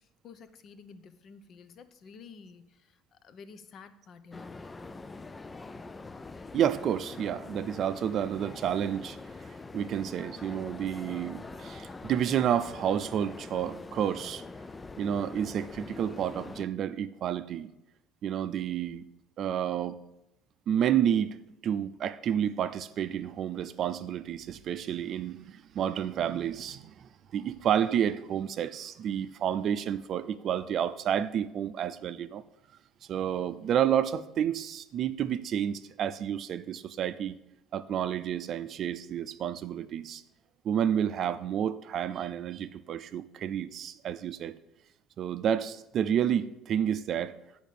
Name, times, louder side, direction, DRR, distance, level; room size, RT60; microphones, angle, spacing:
voice 1, 0.0-4.5, left 5 dB, 45° left, 11 dB, 0.7 m, -51 dB
sound 1, 4.3-16.7, left 3 dB, 15° left, 0.3 m, -44 dB
voice 2, 6.5-9.2 9.7-14.4 15.0-17.7 18.2-19.0 19.4-20.0 20.7-21.4 21.6-32.4 33.1-37.4 37.7-40.2 40.6-44.5 45.2-47.4, right 9 dB, 45° right, 12 dB, 0.5 m, -30 dB
9.1 x 5.1 x 6.8 m, 0.88 s
cardioid pair, 135°, 0 cm